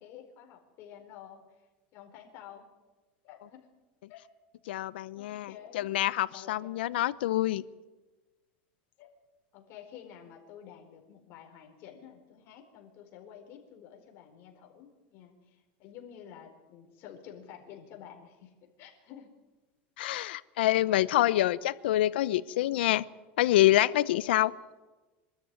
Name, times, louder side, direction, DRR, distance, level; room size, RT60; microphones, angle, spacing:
voice 1, 0.0-1.7 1.9-2.7 3.2-3.7 4.1-4.2 5.1-5.9 6.3-7.0 9.0-9.1 9.5-19.3 21.2-21.4, left 9 dB, 45° left, 2 dB, 4.4 m, -50 dB
voice 2, 4.7-7.6 20.0-23.0 23.4-24.5, left 15 dB, 90° left, 18 dB, 0.7 m, -26 dB
23.0 x 13.0 x 9.8 m, 1.2 s
supercardioid pair, 140°, 5 cm